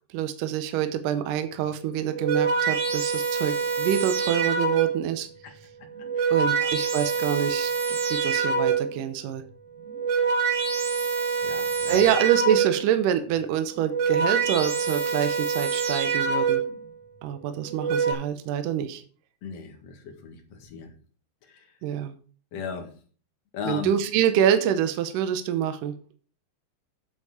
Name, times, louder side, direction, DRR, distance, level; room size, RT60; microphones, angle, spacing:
voice 1, 0.1-5.3 6.3-9.4 11.9-16.6 17.2-19.0 21.8-22.1 23.7-25.9, right 9 dB, 80° right, 9 dB, 1.9 m, -26 dB
sound 1, 2.0-5.1 5.9-9.0 9.8-13.0 13.7-16.8 17.6-18.1, right 5 dB, 60° right, 1.7 m, -26 dB
voice 2, 11.4-12.1 19.4-20.9 22.5-22.9 23.5-23.9, left 6 dB, 50° left, 3 dB, 2.3 m, -36 dB
8.5 x 8.0 x 4.9 m, 0.42 s
omnidirectional pair, 4.9 m